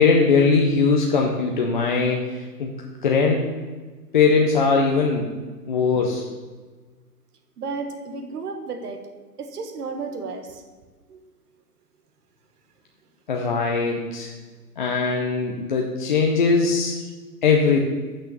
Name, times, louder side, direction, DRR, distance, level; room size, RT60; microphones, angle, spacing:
voice 1, 0.0-2.7 3.0-3.4 4.1-5.3 5.7-6.2 13.3-14.3 14.8-16.9 17.4-17.8, left 4 dB, 35° left, 0 dB, 0.5 m, -20 dB
voice 2, 7.6-9.1 9.4-10.6 11.1-11.2 17.0-17.1, right 4 dB, 75° right, 6 dB, 1.4 m, -33 dB
6.3 x 6.0 x 6.6 m, 1.4 s
hypercardioid pair, 165°, 47 cm